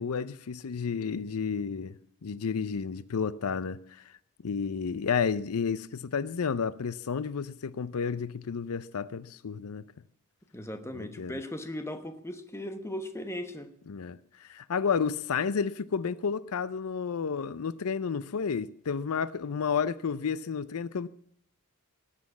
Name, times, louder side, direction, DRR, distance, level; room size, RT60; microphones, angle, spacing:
voice 1, 0.0-2.0 2.2-4.1 4.4-9.8 10.9-11.3 13.9-21.1, left 6 dB, 75° left, 0.5 m, -31 dB
voice 2, 10.5-13.7, left 1 dB, 10° left, 1.1 m, -38 dB
18.5 x 7.5 x 8.4 m
head